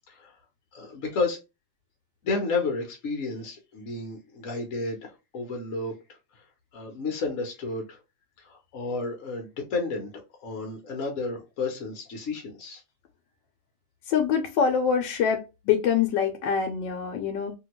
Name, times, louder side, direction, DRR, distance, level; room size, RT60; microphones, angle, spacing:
voice 1, 0.7-1.4 2.2-6.2 6.7-8.0 8.4-10.1 10.4-12.8, left 3 dB, 55° left, 1.0 m, -31 dB
voice 2, 14.1-17.5, left 7 dB, 80° left, 1.3 m, -25 dB
2.8 x 2.7 x 2.9 m
omnidirectional pair, 2.0 m